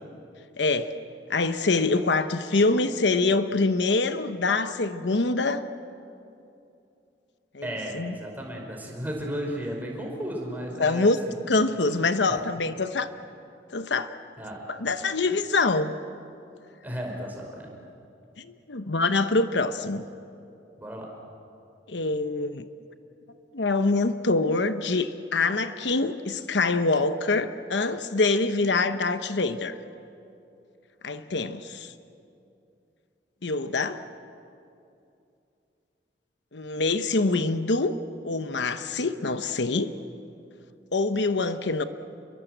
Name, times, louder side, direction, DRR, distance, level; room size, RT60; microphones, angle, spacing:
voice 1, 0.6-0.9 1.3-5.6 7.5-7.7 7.9-8.1 10.8-11.2 11.5-13.1 13.7-14.1 14.8-15.9 18.4-20.0 21.9-22.7 23.5-29.8 31.0-31.9 33.4-34.0 36.5-37.9 38.2-39.9 40.9-41.8, left 3 dB, 80° left, 10 dB, 1.0 m, -25 dB
voice 2, 7.6-11.4 11.8-12.0 12.3-12.5 14.4-14.6 16.8-17.7 20.8-21.1, equal, 10° right, -1 dB, 5.2 m, -34 dB
28.5 x 22.5 x 8.0 m, 2.6 s
head